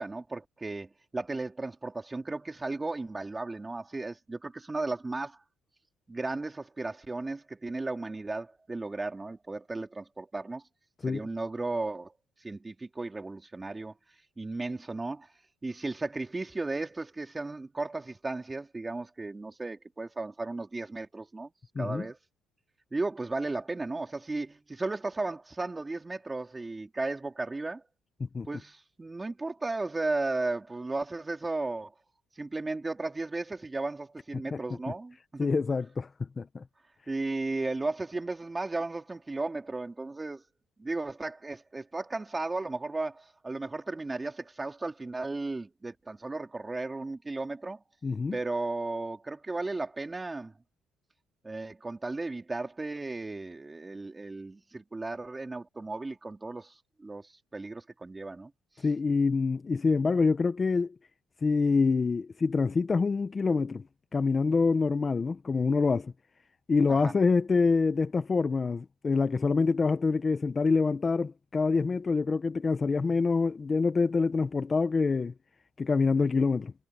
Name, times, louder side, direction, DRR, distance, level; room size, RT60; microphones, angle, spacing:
voice 1, 0.0-5.4 6.1-10.6 11.1-12.1 12.4-13.9 14.4-15.3 15.6-21.5 21.8-22.2 22.9-27.8 28.5-31.9 32.4-35.5 37.1-40.4 40.8-47.8 48.3-50.5 51.4-58.5 66.9-67.2, right 3 dB, 15° right, 3.7 m, -35 dB
voice 2, 21.8-22.1 28.3-28.5 34.5-34.6 35.4-36.1 36.4-36.6 48.0-48.4 58.8-60.9 61.4-63.8 64.1-66.1 66.7-75.3 75.8-76.7, left 4 dB, 25° left, 0.8 m, -26 dB
cardioid pair, 130°, 0 cm